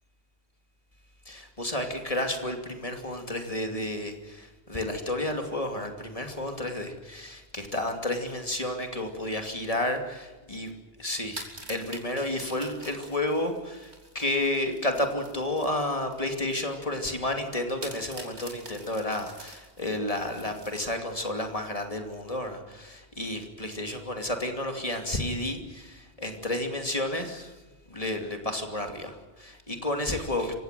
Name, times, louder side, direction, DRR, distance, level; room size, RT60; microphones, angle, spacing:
voice 1, 1.3-10.7 11.0-27.5 27.9-30.5, left 1 dB, 35° left, 4 dB, 2.8 m, -31 dB
sound 1, 11.2-16.7 17.0-17.1 17.8-21.3, right 2 dB, 90° right, 3.7 m, -46 dB
27.0 x 16.0 x 9.2 m, 1.2 s
omnidirectional pair, 1.1 m